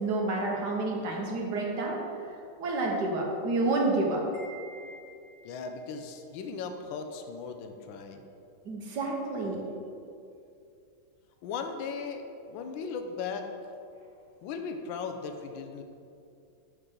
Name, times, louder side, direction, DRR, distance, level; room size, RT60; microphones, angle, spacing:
voice 1, 0.0-2.0 2.6-4.2 8.6-9.6, right 2 dB, 65° right, -1 dB, 1.5 m, -29 dB
Wind chime, 4.3-5.7, right 2 dB, 90° right, 2.1 m, -49 dB
voice 2, 5.4-8.2 11.4-13.5 14.4-15.8, left 5 dB, 85° left, 6 dB, 1.3 m, -37 dB
6.4 x 6.2 x 3.7 m, 2.6 s
omnidirectional pair, 2.1 m